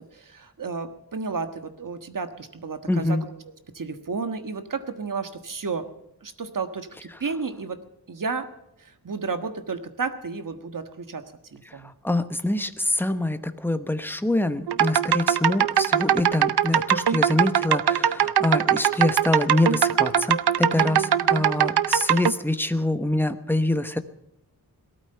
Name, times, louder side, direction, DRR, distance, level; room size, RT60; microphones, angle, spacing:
voice 1, 0.0-5.9 6.2-7.8 8.1-8.5 8.8-11.2 11.5-11.9 20.6-21.8, right 4 dB, 55° right, 8 dB, 1.5 m, -33 dB
voice 2, 2.9-3.2 12.0-24.0, left 1 dB, 5° left, 10 dB, 1.0 m, -25 dB
sound 1, 14.7-22.3, right 9 dB, 80° right, 0.7 m, -21 dB
18.5 x 13.0 x 5.6 m, 0.84 s
wide cardioid pair, 105°, 38 cm